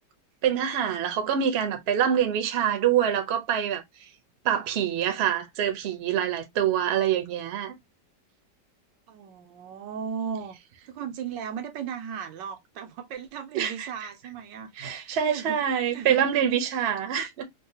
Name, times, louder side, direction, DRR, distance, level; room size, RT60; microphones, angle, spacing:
voice 1, 0.4-4.1 4.4-7.7 13.5-14.1 14.8-17.4, right 9 dB, 55° right, 0.7 m, -25 dB
voice 2, 9.1-10.6 10.9-16.3, right 7 dB, 85° right, 1.3 m, -37 dB
3.7 x 2.2 x 2.7 m
omnidirectional pair, 1.9 m